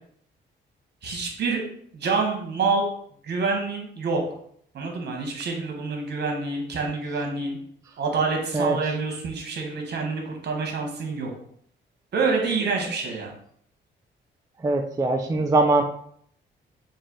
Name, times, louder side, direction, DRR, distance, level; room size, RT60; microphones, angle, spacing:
voice 1, 1.0-1.6 1.9-2.9 3.2-4.2 4.7-7.6 8.0-11.3 12.1-13.3, right 4 dB, 55° right, 1 dB, 1.1 m, -27 dB
voice 2, 8.5-9.0 14.6-15.8, right 2 dB, 15° right, 4 dB, 0.3 m, -22 dB
3.2 x 2.6 x 3.9 m, 0.64 s
cardioid pair, 90°, 20 cm